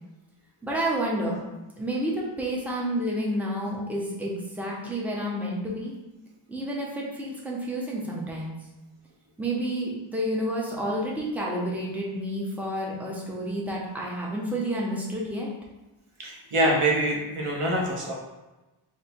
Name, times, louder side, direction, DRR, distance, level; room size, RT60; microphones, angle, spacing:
voice 1, 0.6-1.4 1.7-5.9 6.5-8.5 9.4-15.5, right 1 dB, 5° right, -4 dB, 0.9 m, -30 dB
voice 2, 16.2-18.1, right 1 dB, 85° right, -2 dB, 1.1 m, -25 dB
3.2 x 2.8 x 4.3 m, 1.1 s
wide cardioid pair, 80°, 50 cm